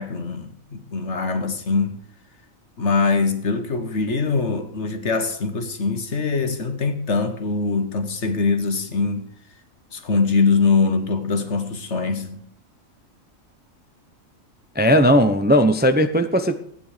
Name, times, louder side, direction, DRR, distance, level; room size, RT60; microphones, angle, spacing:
voice 1, 0.0-2.0 2.8-9.3 9.9-12.4, left 4 dB, 60° left, 1.7 m, -23 dB
voice 2, 14.8-16.6, equal, 10° right, 0.7 m, -17 dB
15.5 x 9.7 x 5.0 m
omnidirectional pair, 1.4 m